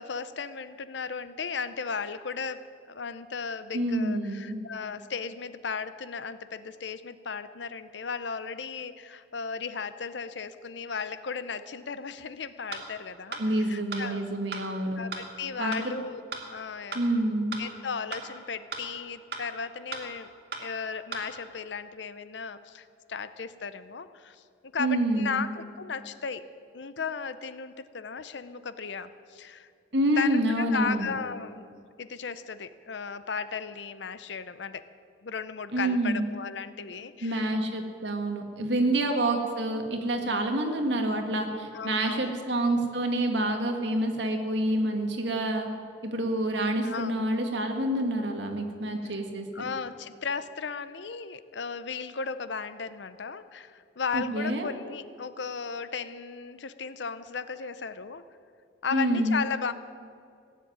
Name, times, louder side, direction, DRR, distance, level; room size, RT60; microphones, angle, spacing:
voice 1, 0.0-14.2 15.0-16.2 16.5-17.0 17.6-20.3 20.6-24.4 24.7-26.4 26.7-29.7 30.2-31.7 32.0-34.9 35.2-37.5 38.7-38.9 41.7-42.3 46.8-47.2 49.0-49.2 49.5-58.2 58.8-59.7, left 5 dB, 75° left, 13 dB, 0.7 m, -35 dB
voice 2, 3.7-4.6 13.4-15.0 15.6-15.9 16.9-17.6 24.8-25.5 29.9-31.1 35.7-36.3 37.2-45.7 46.0-49.6 54.1-54.7 58.9-59.4, right 1 dB, 75° right, 4 dB, 1.9 m, -27 dB
sound 1, 12.7-12.8 13.3-13.4 13.9-14.0 14.5-14.6 15.1-15.2 15.7-15.8 16.3-16.4 16.9-17.0 17.5-17.6 18.1-18.2 18.7-18.8 19.3-19.4 19.9-20.0 20.5-20.6 21.1-21.2, right 5 dB, 60° right, 2.0 m, -35 dB
17.5 x 7.5 x 9.4 m, 2.3 s
head